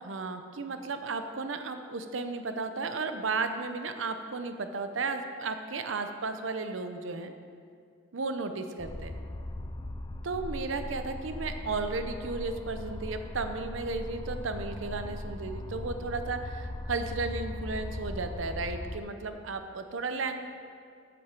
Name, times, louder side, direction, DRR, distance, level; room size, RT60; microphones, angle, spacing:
voice 1, 0.0-7.3 8.1-9.2 10.2-20.4, right 3 dB, 70° right, 8 dB, 0.7 m, -34 dB
sound 1, 8.8-19.0, left 1 dB, 20° left, 0.4 m, -39 dB
8.1 x 6.0 x 7.5 m, 2.2 s
head